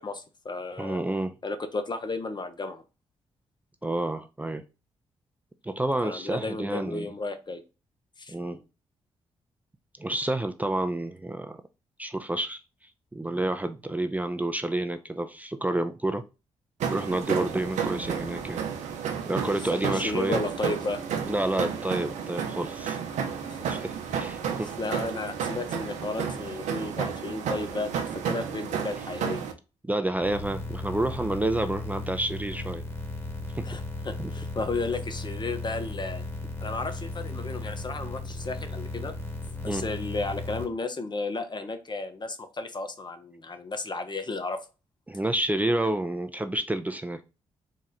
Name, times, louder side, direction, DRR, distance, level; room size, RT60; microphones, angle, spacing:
voice 1, 0.0-1.0 1.4-2.8 6.0-7.6 8.2-8.4 19.7-21.0 23.1-23.8 24.5-27.9 28.2-29.5 33.6-36.2 36.6-39.2 39.6-44.6, left 3 dB, 35° left, 8 dB, 0.8 m, -33 dB
voice 2, 0.8-1.3 3.8-4.6 5.6-7.1 8.3-8.6 10.0-11.6 12.0-12.6 13.1-16.2 16.9-18.6 19.3-20.4 21.3-23.0 23.7-24.7 29.8-32.8 33.5-33.7 34.2-34.3 39.6-39.8 45.1-47.2, right 1 dB, 10° right, 8 dB, 0.5 m, -29 dB
Machine in a factory (loopable), 16.8-29.5, right 7 dB, 75° right, 0.6 m, -32 dB
sound 1, 30.2-40.6, left 2 dB, 20° left, 1.6 m, -36 dB
4.2 x 2.4 x 4.0 m, 0.30 s
hypercardioid pair, 45°, 12 cm